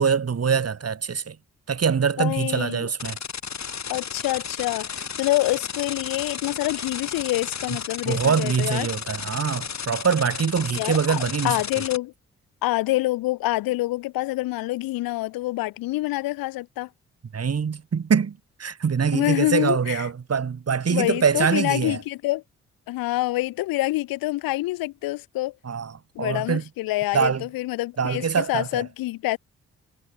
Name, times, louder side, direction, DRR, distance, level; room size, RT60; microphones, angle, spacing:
voice 1, 0.0-1.4 1.7-3.2 7.7-7.8 8.0-11.6 17.3-22.0 25.6-25.9 26.2-26.6 27.1-27.4 28.0-28.8, right 6 dB, 45° right, 2.9 m, -24 dB
voice 2, 2.2-2.9 3.9-8.9 10.8-12.1 12.6-16.9 19.1-20.1 20.9-22.4 22.9-25.5 26.1-29.4, left 18 dB, 80° left, 2.9 m, -26 dB
sound 1, 3.0-12.0, left 6 dB, 50° left, 7.8 m, -33 dB
hypercardioid pair, 45°, 34 cm